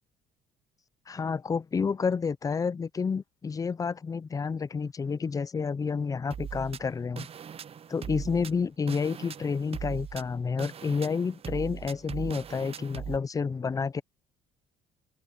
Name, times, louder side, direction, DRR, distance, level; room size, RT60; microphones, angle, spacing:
voice 1, 1.1-7.3 7.9-14.0, left 5 dB, 20° left, 0.4 m, -30 dB
sound 1, 6.3-13.2, right 8 dB, 35° right, 0.6 m, -40 dB
open air
cardioid pair, 110°, 17 cm